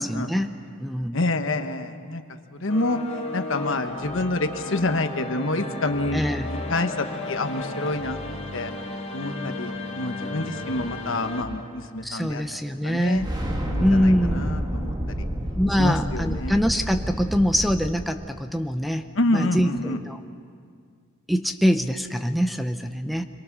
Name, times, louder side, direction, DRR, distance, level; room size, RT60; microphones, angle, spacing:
voice 1, 0.0-1.2 6.1-6.5 12.0-13.3 13.8-14.6 15.6-19.0 19.3-20.2 21.3-23.2, equal, ahead, 7 dB, 0.7 m, -24 dB
voice 2, 1.1-2.2 2.6-3.0 3.3-6.2 6.5-8.2 8.5-8.7 9.1-12.4 12.8-13.3 13.7-14.9 15.8-16.6 19.2-20.0, left 2 dB, 70° left, 7 dB, 1.3 m, -27 dB
sound 1, 2.7-11.4, left 2 dB, 35° left, 3.6 m, -34 dB
sound 2, 13.1-17.9, equal, 20° right, 2.0 m, -29 dB
26.5 x 22.5 x 6.1 m, 2.1 s
head